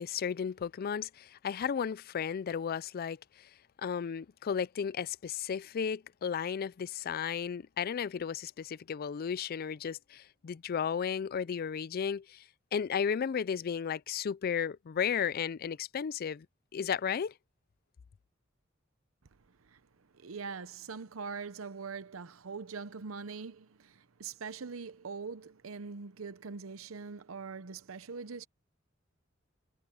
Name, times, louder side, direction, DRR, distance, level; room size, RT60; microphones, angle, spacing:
voice 1, 0.0-3.5 3.8-12.4 12.7-16.5 16.7-17.3, left 7 dB, 45° left, 0.4 m, -34 dB
voice 2, 20.1-28.5, right 5 dB, 90° right, 0.8 m, -42 dB
head